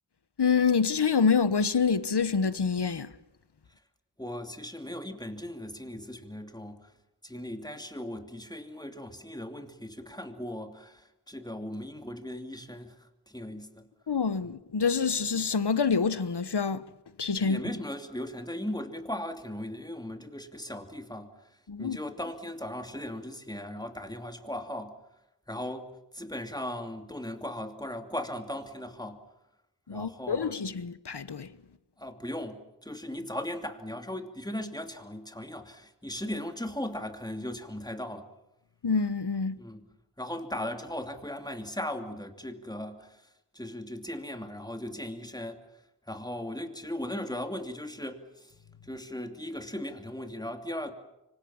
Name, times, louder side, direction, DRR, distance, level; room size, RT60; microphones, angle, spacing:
voice 1, 0.4-3.1 14.1-16.8 17.2-17.6 21.7-22.0 29.9-31.5 38.8-39.6, left 5 dB, 75° left, 1.2 m, -26 dB
voice 2, 4.2-6.9 7.2-13.9 14.4-14.5 17.4-21.3 21.8-24.9 25.5-29.2 29.9-30.5 32.0-38.3 39.6-39.8 40.2-43.2 43.5-45.6 46.1-48.5 48.8-50.9, left 1 dB, 10° left, 2.8 m, -38 dB
26.0 x 25.0 x 7.2 m
wide cardioid pair, 50°, 40 cm